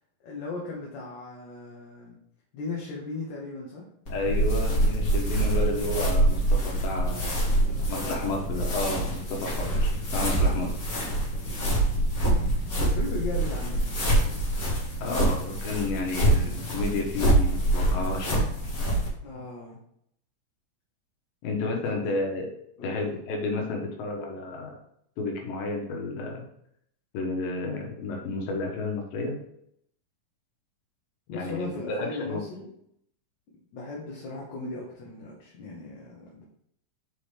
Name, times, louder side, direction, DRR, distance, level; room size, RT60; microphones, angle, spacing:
voice 1, 0.2-2.2 2.5-3.9 5.4-5.8 7.5-8.0 12.8-14.0 19.2-19.8 21.8-22.1 22.8-23.0 31.3-32.7 33.7-36.4, left 3 dB, 65° left, -3 dB, 2.3 m, -37 dB
voice 2, 4.1-7.3 7.9-10.7 15.0-18.5 21.4-22.5 22.8-24.7 25.2-26.4 27.1-29.4 31.3-32.4, left 3 dB, 85° left, 1 dB, 2.9 m, -31 dB
sound 1, 4.1-19.1, right 1 dB, 30° left, 1.8 m, -25 dB
6.7 x 4.8 x 3.5 m, 0.72 s
omnidirectional pair, 3.9 m